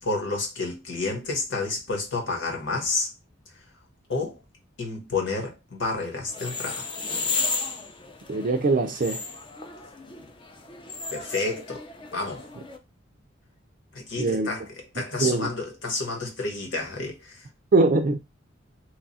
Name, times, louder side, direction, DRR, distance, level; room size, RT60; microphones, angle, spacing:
voice 1, 0.0-3.1 4.1-4.4 4.8-6.9 10.2-10.3 11.1-11.9 12.1-12.5 13.9-17.5, left 3 dB, 70° left, 1.2 m, -30 dB
sound 1, 6.3-12.8, left 3 dB, 25° left, 0.5 m, -34 dB
voice 2, 8.3-9.2 14.2-14.5 15.2-15.5 17.7-18.2, right 3 dB, 45° right, 0.4 m, -22 dB
3.1 x 2.4 x 4.0 m
head